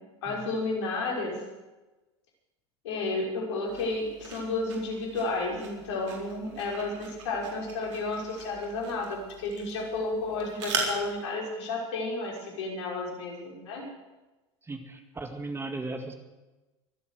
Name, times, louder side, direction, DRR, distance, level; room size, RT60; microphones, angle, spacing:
voice 1, 0.2-1.4 2.8-13.8, left 3 dB, 75° left, -1 dB, 5.7 m, -32 dB
sound 1, 3.7-11.2, right 4 dB, 80° right, 4.2 m, -39 dB
voice 2, 14.6-16.1, right 2 dB, 15° right, 6 dB, 2.0 m, -37 dB
24.0 x 8.2 x 6.6 m, 1.1 s
hypercardioid pair, 95°, 15 cm